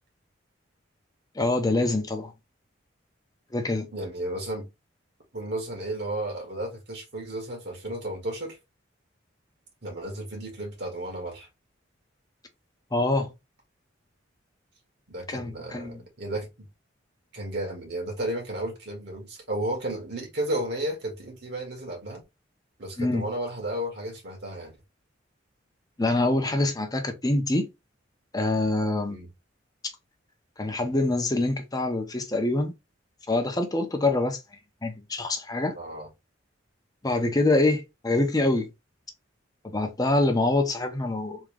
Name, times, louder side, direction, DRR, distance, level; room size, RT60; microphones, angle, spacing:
voice 1, 1.4-2.3 3.5-3.9 12.9-13.3 15.3-16.0 23.0-23.3 26.0-27.7 28.3-29.2 30.6-32.7 33.3-34.4 34.8-35.7 37.0-38.7 39.6-41.4, left 2 dB, 20° left, 0.7 m, -25 dB
voice 2, 3.9-4.7 5.3-8.6 9.8-11.5 15.1-16.5 17.3-22.2 22.8-24.8 29.1-29.3 35.8-36.1, right 1 dB, 60° right, 1.8 m, -33 dB
3.6 x 2.8 x 3.3 m
head